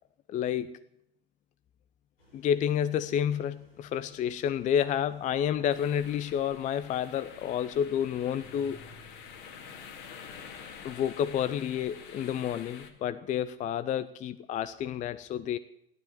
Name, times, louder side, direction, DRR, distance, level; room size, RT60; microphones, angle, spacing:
voice 1, 0.3-0.8 2.3-8.9 10.8-15.6, left 9 dB, 25° left, 14 dB, 0.6 m, -30 dB
sound 1, 2.2-11.5, left 1 dB, 80° left, 5.3 m, -62 dB
sound 2, 5.7-12.9, left 6 dB, 55° left, 2.3 m, -47 dB
sound 3, 8.3-9.7, left 2 dB, 10° left, 1.8 m, -54 dB
16.0 x 12.5 x 6.9 m, 0.77 s
figure-of-eight pair, 85°, 29 cm